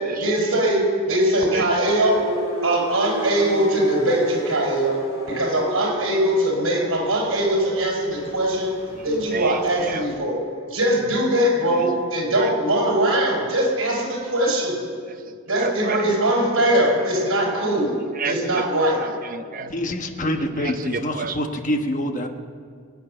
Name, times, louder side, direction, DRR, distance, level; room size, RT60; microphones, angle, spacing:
voice 1, 0.2-2.2 2.6-5.0 5.3-8.7 9.0-14.8 15.5-18.0 18.2-19.0, right 1 dB, 60° right, -1 dB, 5.4 m, -21 dB
sound 1, 1.8-10.1, equal, 80° left, 5.2 m, -33 dB
voice 2, 8.9-10.1 11.8-12.5 15.1-16.0 17.7-17.9 18.1-19.7 20.6-21.4, right 4 dB, 40° right, 6 dB, 0.7 m, -31 dB
voice 3, 19.6-22.3, left 1 dB, 35° left, 5 dB, 1.1 m, -26 dB
23.0 x 9.5 x 6.7 m, 2.1 s
head